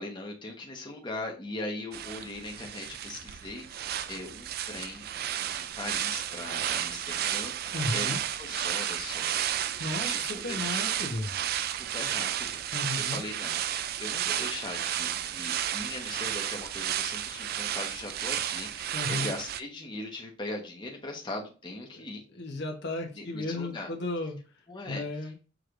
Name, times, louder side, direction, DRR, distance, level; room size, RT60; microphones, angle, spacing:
voice 1, 0.0-9.4 10.0-10.6 11.8-12.6 12.9-22.2 23.2-23.9 24.7-25.0, left 2 dB, 25° left, -1 dB, 1.0 m, -40 dB
sound 1, 1.9-19.6, right 10 dB, 50° right, 0.3 m, -32 dB
voice 2, 7.7-8.2 9.8-11.3 12.7-13.2 18.9-19.3 21.9-22.0 22.3-24.4 24.9-25.3, left 2 dB, 60° left, 3 dB, 1.0 m, -34 dB
6.2 x 3.2 x 2.5 m, 0.35 s
head